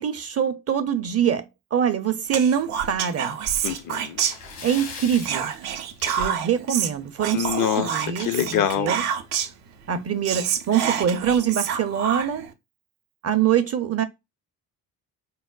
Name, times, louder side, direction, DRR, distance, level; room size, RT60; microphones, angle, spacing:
voice 1, 0.0-1.4 1.7-3.4 4.6-5.5 6.2-9.0 9.9-12.5 13.2-14.0, right 8 dB, 35° right, 0.5 m, -24 dB
Whispering, 2.3-4.8 5.2-9.6 10.0-10.1 10.2-12.5, right 8 dB, 80° right, 0.6 m, -28 dB
voice 2, 3.6-4.2 6.1-6.2 7.3-7.9 8.2-8.9, left 10 dB, 45° left, 0.5 m, -25 dB
Splash splatter, 4.2-6.5 6.9-7.0 7.5-7.6 9.0-9.1 9.4-9.5 10.1-10.4, left 5 dB, 70° left, 1.2 m, -39 dB
4.7 x 2.0 x 2.3 m
hypercardioid pair, 50°, 47 cm